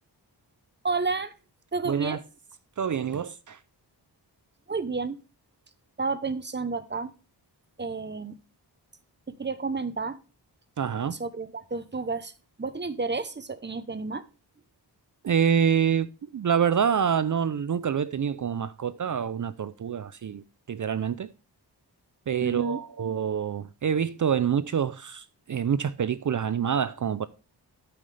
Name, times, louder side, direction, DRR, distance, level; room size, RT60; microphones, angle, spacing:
voice 1, 0.8-1.3 1.7-2.2 4.7-5.2 6.0-7.1 7.8-8.4 9.3-10.2 11.1-12.3 12.6-14.3 22.4-22.8, right 4 dB, 25° right, 0.9 m, -31 dB
voice 2, 1.9-2.2 2.8-3.6 10.8-11.2 15.2-20.4 20.7-21.3 22.3-27.3, right 7 dB, 50° right, 0.5 m, -26 dB
12.5 x 5.6 x 3.3 m
wide cardioid pair, 75°, 42 cm